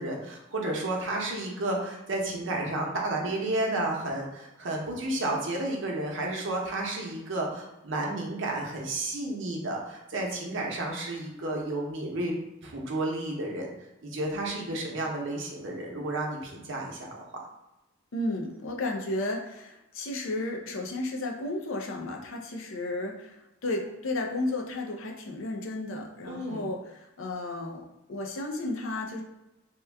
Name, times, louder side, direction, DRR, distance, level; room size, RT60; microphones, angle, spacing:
voice 1, 0.0-13.7 14.0-17.1 26.2-26.6, right 2 dB, 65° right, -1 dB, 0.7 m, -32 dB
voice 2, 18.1-27.8 28.1-29.2, left 2 dB, 70° left, 1 dB, 0.5 m, -33 dB
3.0 x 2.2 x 3.3 m, 0.94 s
head